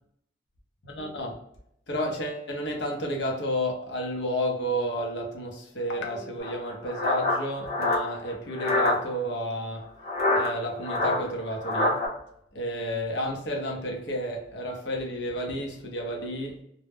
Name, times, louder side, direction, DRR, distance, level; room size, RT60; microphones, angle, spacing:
voice 1, 0.8-1.4 1.9-9.9 10.3-12.1 12.5-16.6, equal, 70° left, 0.7 m, -31 dB
sound 1, 6.4-9.0 10.0-12.1, left 2 dB, 40° left, 0.7 m, -26 dB
2.2 x 2.0 x 3.3 m
head